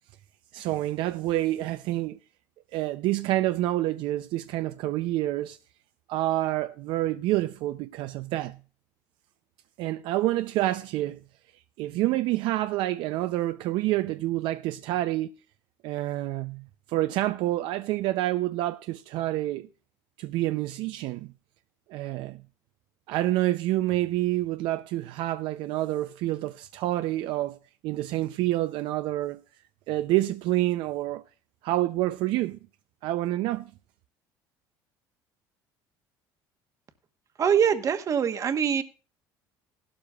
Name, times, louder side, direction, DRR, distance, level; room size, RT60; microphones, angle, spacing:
voice 1, 0.5-2.2 2.7-5.6 6.1-8.6 9.8-11.2 11.8-15.3 15.8-19.7 20.2-21.3 21.9-22.4 23.1-27.6 27.8-29.4 29.9-31.2 31.6-32.6 33.0-33.7, right 16 dB, 70° right, 0.5 m, -28 dB
voice 2, 37.4-38.8, right 7 dB, 40° right, 1.1 m, -23 dB
15.5 x 12.0 x 2.3 m
cardioid pair, 105°, 9 cm